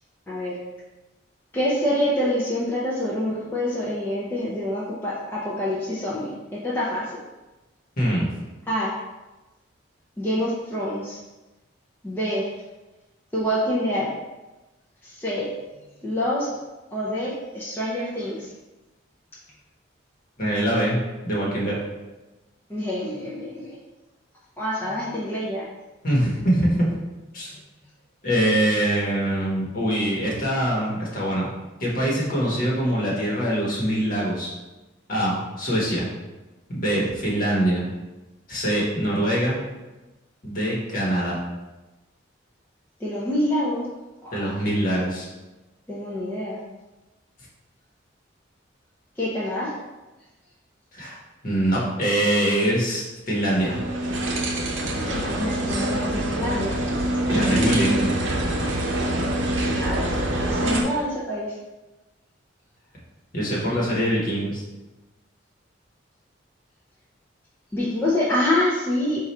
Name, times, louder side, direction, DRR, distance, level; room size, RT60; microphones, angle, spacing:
voice 1, 0.3-0.6 1.5-7.2 8.7-8.9 10.2-11.2 12.0-12.5 13.3-14.1 15.0-15.5 16.0-16.5 16.9-18.5 22.7-23.7 24.6-25.7 43.0-43.9 44.2-44.5 45.9-46.6 49.2-49.7 54.9-56.8 57.6-57.7 59.6-61.6 67.7-69.2, left 1 dB, 10° left, -8 dB, 0.6 m, -26 dB
voice 2, 8.0-8.3 20.4-21.8 26.0-26.9 27.3-27.5 28.2-31.5 31.8-34.5 35.1-36.1 36.7-37.8 38.5-39.6 40.4-41.4 44.3-45.2 50.9-51.2 51.4-53.8 57.3-58.1 63.3-64.6, right 1 dB, 45° left, -5 dB, 1.3 m, -23 dB
sound 1, 53.4-60.8, right 1 dB, 75° right, 0.7 m, -25 dB
4.7 x 2.5 x 4.2 m, 1.1 s
head